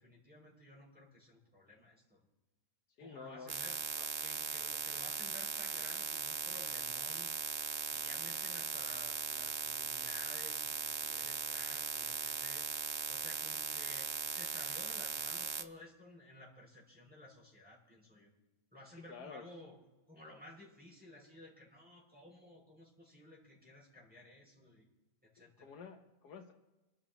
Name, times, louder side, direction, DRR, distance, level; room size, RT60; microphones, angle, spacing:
voice 1, 0.0-2.2 3.0-3.8 4.2-7.3 7.9-12.7 13.1-18.3 18.7-19.8 20.1-24.9 25.3-25.7, left 1 dB, 5° right, -4 dB, 6.0 m, -55 dB
voice 2, 3.0-3.6 4.0-4.1 18.9-19.4 25.4-26.5, left 6 dB, 75° left, 4 dB, 1.5 m, -50 dB
sound 1, 3.5-15.6, right 7 dB, 55° right, 0.7 m, -39 dB
26.0 x 13.0 x 3.0 m, 1.1 s
omnidirectional pair, 1.8 m